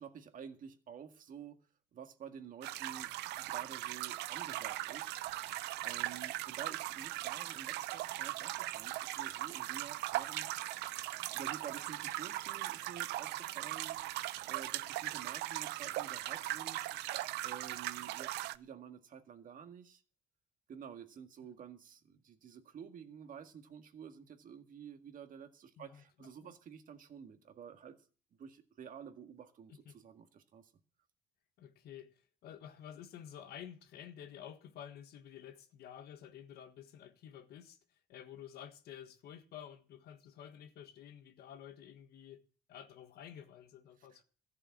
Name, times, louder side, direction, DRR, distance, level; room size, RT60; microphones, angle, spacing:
voice 1, 0.0-1.6 1.9-3.1 3.4-5.2 5.8-10.5 11.3-14.0 14.5-16.8 17.4-20.0 20.7-28.0 28.4-30.7 44.1-44.2, right 7 dB, 55° right, 1.9 m, -50 dB
sound 1, 2.6-18.6, right 16 dB, 85° right, 0.6 m, -39 dB
voice 2, 25.8-26.5 29.8-30.0 31.6-44.2, left 9 dB, 70° left, 1.5 m, -51 dB
14.0 x 6.7 x 8.6 m
cardioid pair, 110°, 17 cm